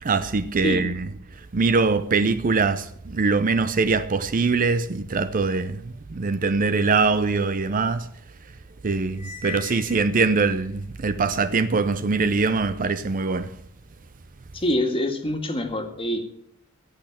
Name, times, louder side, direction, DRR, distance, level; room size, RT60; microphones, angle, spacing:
voice 1, 0.0-8.1 8.8-13.5, right 4 dB, 40° right, 0.5 m, -23 dB
Cymbal, 9.1-10.6, left 6 dB, 80° right, 3.0 m, -40 dB
voice 2, 14.5-16.2, left 1 dB, 25° left, 1.9 m, -25 dB
16.5 x 6.3 x 8.0 m
head